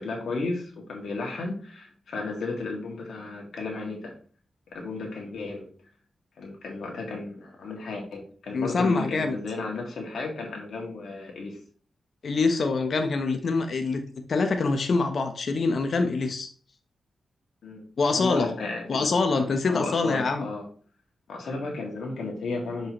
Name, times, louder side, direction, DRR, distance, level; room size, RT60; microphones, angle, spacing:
voice 1, 0.0-4.1 4.7-5.7 6.4-11.6 17.6-19.1 19.4-20.7 21.3-22.9, left 3 dB, 80° left, 0 dB, 2.0 m, -34 dB
voice 2, 8.5-9.3 12.2-14.0 14.3-16.5 18.0-18.5 18.9-20.4, left 3 dB, 65° left, 5 dB, 0.9 m, -25 dB
6.1 x 5.3 x 3.0 m, 0.41 s
cardioid pair, 65°, 0 cm